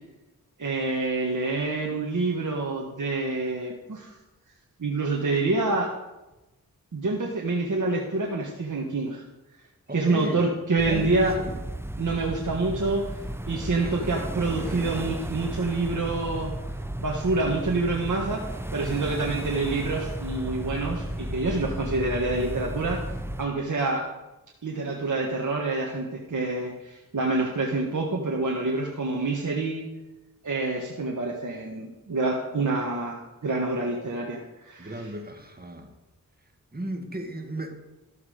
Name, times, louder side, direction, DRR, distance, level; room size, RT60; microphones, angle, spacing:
voice 1, 0.6-4.1 4.8-5.9 6.9-9.2 9.9-11.3 12.0-13.1 13.5-16.5 17.0-23.1 23.4-24.0 24.6-29.9 30.4-34.9, right 3 dB, 55° right, -1 dB, 1.5 m, -27 dB
voice 2, 9.9-11.6 13.8-15.0 34.8-35.9 36.7-37.7, right 1 dB, 25° right, 4 dB, 1.9 m, -36 dB
sound 1, 10.8-23.5, right 1 dB, 5° right, 0.7 m, -34 dB
12.5 x 7.2 x 5.0 m, 1.0 s
cardioid pair, 55°, 36 cm